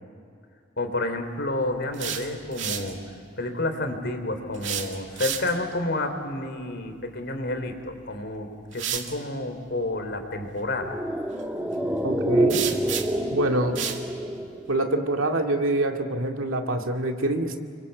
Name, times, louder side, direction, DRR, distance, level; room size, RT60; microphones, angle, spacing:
voice 1, 0.8-3.0 3.4-11.0, left 2 dB, 55° left, 6 dB, 3.5 m, -30 dB
sound 1, 1.7-2.9 4.5-5.7 7.8-7.9 8.7-9.1 12.5-13.3 13.7-14.0, right 9 dB, 65° right, 2.3 m, -31 dB
sound 2, 10.7-15.3 15.5-15.6, right 1 dB, 5° right, 1.5 m, -27 dB
voice 2, 12.0-12.6 13.3-13.8 14.7-17.6, right 1 dB, 90° right, 3 dB, 2.3 m, -25 dB
30.0 x 24.0 x 8.3 m, 2.4 s
head